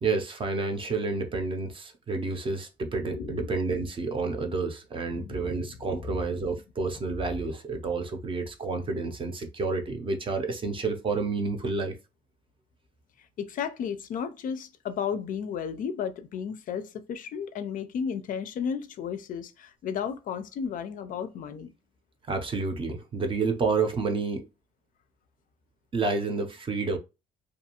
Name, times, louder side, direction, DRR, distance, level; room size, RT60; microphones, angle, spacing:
voice 1, 0.0-12.0 22.3-24.5 25.9-27.0, right 4 dB, 30° right, 0.6 m, -29 dB
voice 2, 3.1-3.5 5.1-5.5 13.4-21.7, left 7 dB, 55° left, 0.4 m, -33 dB
2.6 x 2.3 x 2.8 m
cardioid pair, 110°, 17 cm